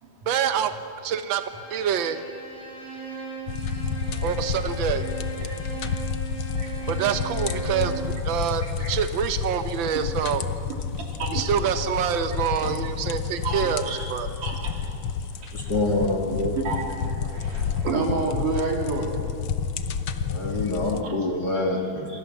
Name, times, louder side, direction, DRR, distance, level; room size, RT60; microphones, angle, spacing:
voice 1, 0.3-0.7 1.0-1.4 1.7-2.2 4.2-5.1 6.9-7.9 8.2-10.4 11.3-13.8 14.1-14.3, right 8 dB, 90° right, 8 dB, 1.0 m, -26 dB
Bowed string instrument, 1.3-8.1, right 4 dB, ahead, 7.7 m, -37 dB
sound 1, 3.5-21.0, left 6 dB, 75° left, 1.2 m, -30 dB
voice 2, 6.6-6.9 7.3-7.7 9.9-10.1 10.7-11.5 12.3-12.7 13.4-14.1 14.4-15.6 16.5-19.1 20.6-21.1, right 3 dB, 70° right, 0 dB, 4.7 m, -31 dB
voice 3, 15.5-16.6 20.3-22.2, left 2 dB, 35° left, 0 dB, 2.4 m, -26 dB
28.0 x 23.0 x 7.2 m, 2.6 s
omnidirectional pair, 3.7 m